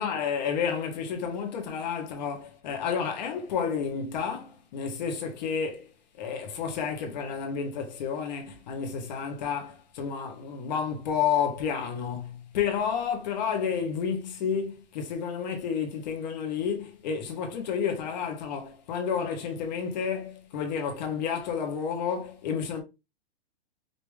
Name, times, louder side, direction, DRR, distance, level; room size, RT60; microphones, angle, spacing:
voice 1, 0.0-5.9 6.2-22.8, left 7 dB, 40° left, 1.3 m, -30 dB
5.3 x 2.9 x 3.3 m
hypercardioid pair, 165°, 33 cm